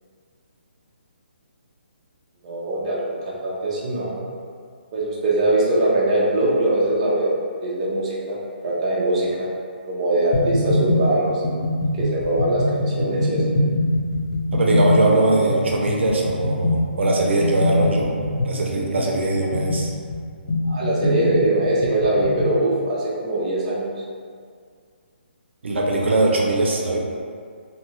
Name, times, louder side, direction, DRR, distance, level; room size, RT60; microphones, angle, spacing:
voice 1, 2.4-4.3 4.9-7.3 7.6-8.4 8.6-9.5 9.9-11.4 12.0-13.4 20.6-23.9, right 1 dB, 30° right, -6 dB, 0.5 m, -22 dB
sound 1, 10.3-22.6, left 1 dB, 40° left, 0.6 m, -23 dB
voice 2, 14.5-18.1 18.4-19.9 25.6-27.0, right 2 dB, 85° right, -1 dB, 0.5 m, -21 dB
2.7 x 2.2 x 2.9 m, 2.1 s
hypercardioid pair, 170°, 6 cm